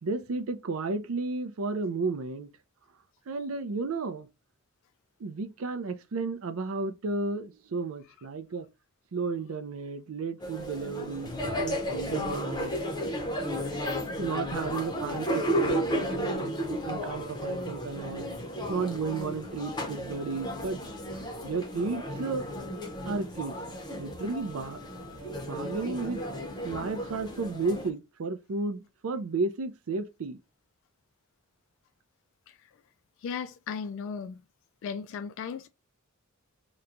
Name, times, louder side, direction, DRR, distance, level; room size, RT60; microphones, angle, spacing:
voice 1, 0.0-2.5 3.3-4.3 5.2-8.7 9.1-12.7 14.0-18.3 18.7-20.8 21.4-22.5 23.1-23.6 24.0-24.8 25.5-26.2 26.6-30.4, right 4 dB, 70° right, 0.4 m, -33 dB
sound 1, 10.4-27.9, equal, 20° left, 0.7 m, -33 dB
voice 2, 33.2-34.4 34.8-35.7, left 6 dB, 60° left, 0.3 m, -36 dB
3.0 x 2.2 x 3.7 m
head